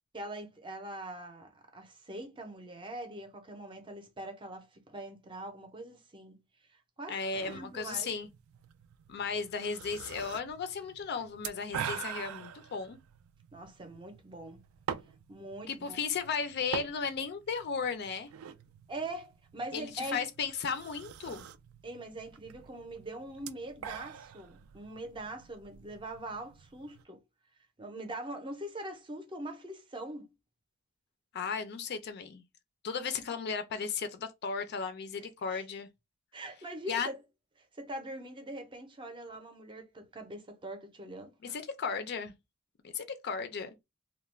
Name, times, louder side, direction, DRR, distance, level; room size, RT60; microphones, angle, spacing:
voice 1, 0.1-6.4 6.7-7.2 7.5-8.1 13.5-14.6 15.3-16.0 18.9-20.2 21.8-27.2 27.8-30.3 35.2-35.6 36.3-37.2 37.7-41.6, right 1 dB, 25° right, 0.6 m, -43 dB
voice 2, 7.1-8.3 9.1-13.0 15.7-18.3 19.7-21.5 31.3-32.4 32.8-35.9 36.9-37.1 41.4-42.3 42.8-43.7, left 5 dB, 50° left, 0.4 m, -35 dB
sound 1, 7.3-27.0, right 8 dB, 80° right, 0.3 m, -45 dB
2.3 x 2.1 x 3.1 m
head